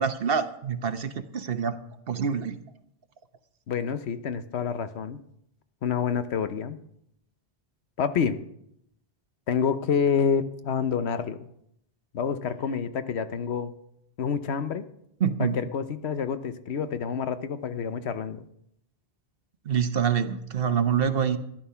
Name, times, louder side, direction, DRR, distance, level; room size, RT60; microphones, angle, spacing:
voice 1, 0.0-1.8 2.1-2.6 15.2-15.6 19.7-21.4, right 7 dB, 60° right, 10 dB, 1.1 m, -26 dB
voice 2, 3.7-5.2 5.8-6.8 8.0-8.4 9.5-11.5 12.1-13.7 14.2-14.8 15.4-18.5, left 6 dB, 80° left, 11 dB, 1.1 m, -28 dB
13.5 x 11.0 x 5.7 m, 0.77 s
omnidirectional pair, 1.1 m